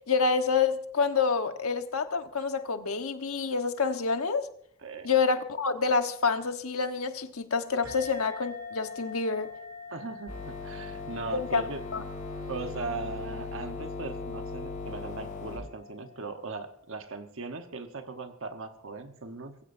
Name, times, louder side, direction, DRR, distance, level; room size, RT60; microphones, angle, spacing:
voice 1, 0.1-4.5 5.0-9.5 11.3-11.7 11.9-12.0, left 5 dB, 80° left, 7 dB, 1.3 m, -27 dB
voice 2, 4.8-5.1 9.9-11.8 12.5-19.6, right 3 dB, 65° right, 6 dB, 1.2 m, -39 dB
sound 1, 7.8-16.9, left 4 dB, 85° right, 3.3 m, -45 dB
sound 2, 10.3-15.6, left 3 dB, 40° left, 6.9 m, -39 dB
23.0 x 15.5 x 2.7 m, 0.65 s
head